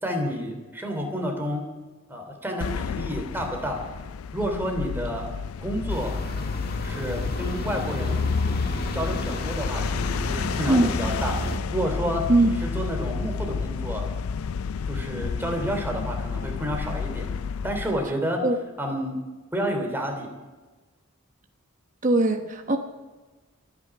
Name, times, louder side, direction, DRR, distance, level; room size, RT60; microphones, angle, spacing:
voice 1, 0.0-1.7 2.1-3.8 4.3-5.3 5.6-6.2 6.8-8.3 8.9-11.4 11.7-12.2 12.5-14.1 14.9-17.3 17.6-18.4 18.8-19.1 19.5-20.3, equal, 10° right, 3 dB, 2.9 m, -30 dB
sound 1, 2.6-18.1, left 5 dB, 80° left, 0.4 m, -31 dB
sound 2, 5.9-11.6, left 1 dB, 45° left, 1.8 m, -32 dB
voice 2, 22.0-22.8, right 2 dB, 35° right, 4 dB, 1.0 m, -20 dB
26.5 x 9.9 x 4.8 m, 1.3 s
head